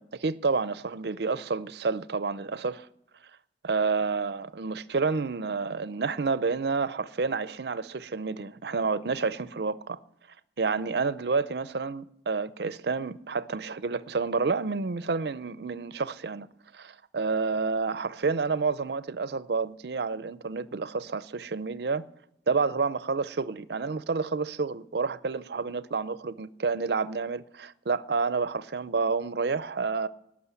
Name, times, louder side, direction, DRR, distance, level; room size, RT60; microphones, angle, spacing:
voice 1, 0.0-2.9 3.6-10.0 10.6-16.5 16.7-22.0 22.5-30.1, right 4 dB, 65° right, 0.6 m, -29 dB
18.5 x 6.3 x 9.7 m
head